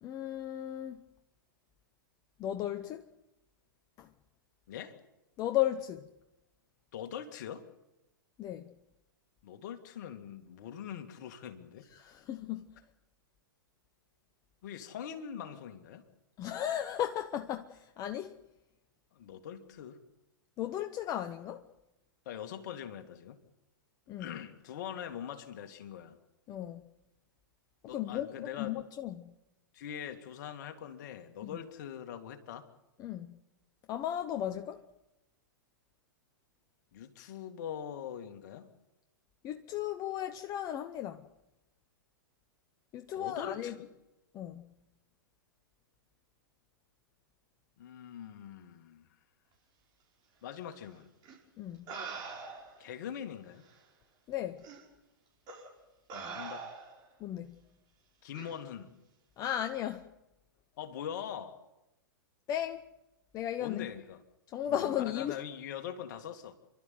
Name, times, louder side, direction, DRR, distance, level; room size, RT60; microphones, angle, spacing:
voice 1, 0.0-1.0 2.4-3.0 4.0-4.1 5.4-6.1 8.4-8.7 11.9-12.7 16.4-18.4 20.6-21.6 24.1-24.4 26.5-26.8 27.9-29.3 31.4-31.5 33.0-33.4 33.9-34.8 39.4-41.2 42.9-43.8 44.3-44.7 51.6-51.8 54.3-54.6 57.2-57.6 59.4-60.1 62.5-62.8 63.3-63.9 64.5-65.4, left 11 dB, 30° left, 0.9 m, -35 dB
voice 2, 4.7-5.0 6.9-7.7 9.4-11.9 14.6-16.0 19.1-20.0 22.3-23.4 24.2-26.2 27.9-28.8 29.7-32.7 36.9-38.7 43.1-43.9 47.8-49.1 50.4-51.1 52.8-53.6 56.3-56.7 58.2-58.9 60.8-61.6 63.6-64.2 64.7-66.6, left 9 dB, 55° left, 2.3 m, -43 dB
sound 1, 51.2-51.3 51.9-52.8 53.7-53.8 54.6-54.8 55.5-55.7 56.1-57.1 58.3-58.5, right 4 dB, 35° right, 5.6 m, -43 dB
29.0 x 12.5 x 9.5 m
figure-of-eight pair, 105°, 12 cm